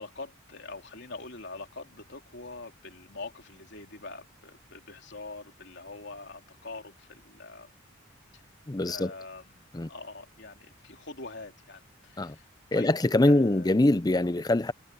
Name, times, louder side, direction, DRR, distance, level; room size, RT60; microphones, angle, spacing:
voice 1, 0.0-7.7 8.3-8.4 8.9-9.6 9.9-12.4 12.7-12.9 13.2-13.7, left 3 dB, 55° left, 3.7 m, -44 dB
voice 2, 8.7-9.1 9.7-9.9 12.2-12.4 12.7-14.7, left 1 dB, 20° left, 0.5 m, -23 dB
head